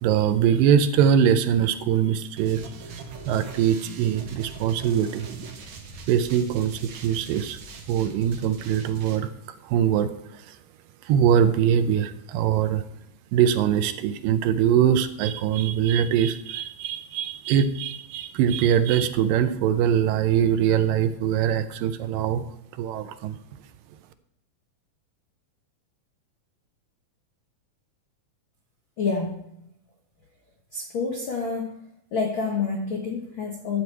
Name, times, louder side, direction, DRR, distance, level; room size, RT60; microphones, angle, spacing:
voice 1, 0.0-2.9 3.2-5.3 6.1-7.6 7.9-9.3 9.6-10.6 11.0-12.8 13.3-22.4 22.7-23.4, right 9 dB, 80° right, 10 dB, 2.2 m, -22 dB
sound 1, 2.4-9.2, right 5 dB, 60° right, 2.3 m, -40 dB
voice 2, 29.0-29.5 30.7-31.8 32.1-33.8, left 4 dB, 85° left, 1 dB, 1.1 m, -28 dB
12.0 x 4.6 x 8.1 m, 0.76 s
omnidirectional pair, 4.2 m